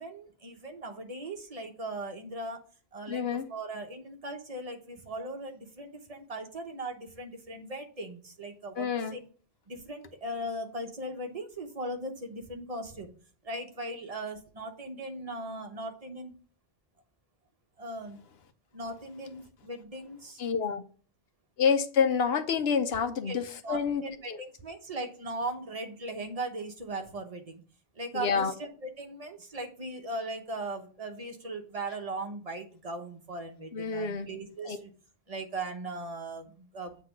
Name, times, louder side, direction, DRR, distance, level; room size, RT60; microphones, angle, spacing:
voice 1, 0.0-2.6 2.9-9.2 9.7-13.1 13.4-16.3 17.8-18.2 18.7-20.4 23.3-23.4 23.6-27.6 28.0-34.9 35.3-37.0, right 2 dB, 40° right, 1.1 m, -38 dB
voice 2, 3.1-3.4 8.8-9.2 20.4-20.8 21.6-24.4 28.1-28.5 33.7-34.3 34.7-34.8, left 6 dB, 75° left, 1.0 m, -28 dB
7.6 x 3.1 x 5.8 m
omnidirectional pair, 1.0 m